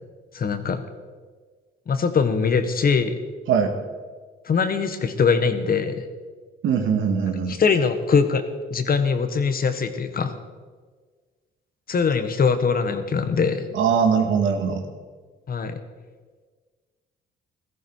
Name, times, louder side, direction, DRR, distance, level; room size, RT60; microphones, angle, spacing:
voice 1, 0.3-0.8 1.9-3.2 4.4-6.0 7.5-8.4 8.7-10.4 11.9-13.7 15.5-15.8, left 5 dB, 50° left, 9 dB, 1.4 m, -22 dB
voice 2, 6.6-7.6 13.7-14.8, right 6 dB, 80° right, 5 dB, 1.8 m, -21 dB
16.5 x 14.0 x 4.7 m, 1.5 s
cardioid pair, 90°, 20 cm